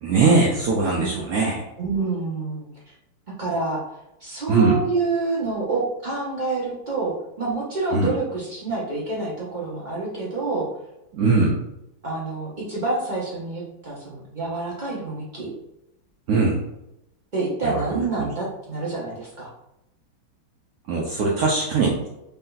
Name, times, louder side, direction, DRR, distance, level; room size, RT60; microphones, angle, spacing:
voice 1, 0.0-1.6 4.5-4.8 7.9-8.1 11.1-11.6 16.3-16.6 17.6-18.3 20.9-22.0, right 4 dB, 70° right, -2 dB, 0.8 m, -21 dB
voice 2, 1.8-2.7 3.4-3.8 4.2-10.7 12.0-15.5 17.3-19.5, right 3 dB, 45° right, -5 dB, 0.6 m, -27 dB
3.3 x 2.8 x 3.8 m, 0.86 s
omnidirectional pair, 2.2 m